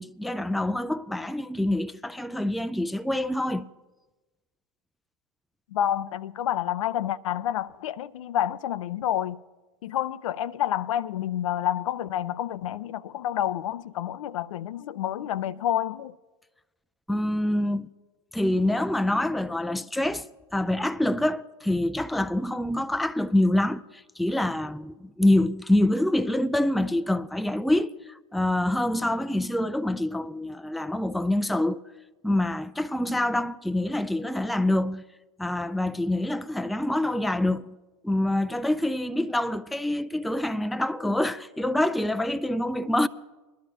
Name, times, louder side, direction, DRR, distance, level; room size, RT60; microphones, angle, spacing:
voice 1, 0.0-3.7 17.1-17.9 18.3-20.3 20.5-31.8 32.2-35.0 35.4-37.8 38.0-43.1, left 1 dB, ahead, 0.3 m, -26 dB
voice 2, 5.7-9.4 9.8-16.1, left 11 dB, 75° left, 0.5 m, -29 dB
21.0 x 12.0 x 3.0 m
hypercardioid pair, 85°, 17 cm